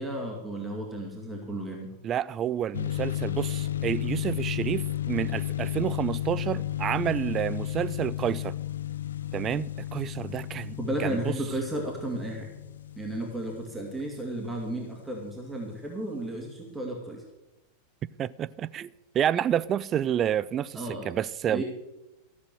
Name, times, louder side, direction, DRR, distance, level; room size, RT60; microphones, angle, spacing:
voice 1, 0.0-1.9 10.8-12.5 13.0-17.2 20.7-21.1 21.5-21.6, right 1 dB, 5° right, 2.3 m, -33 dB
voice 2, 2.0-8.6 9.3-11.2 18.2-21.6, right 10 dB, 30° right, 0.4 m, -29 dB
sound 1, 2.7-15.2, left 12 dB, 65° left, 0.5 m, -33 dB
14.5 x 7.3 x 7.8 m
figure-of-eight pair, 90°, 0 cm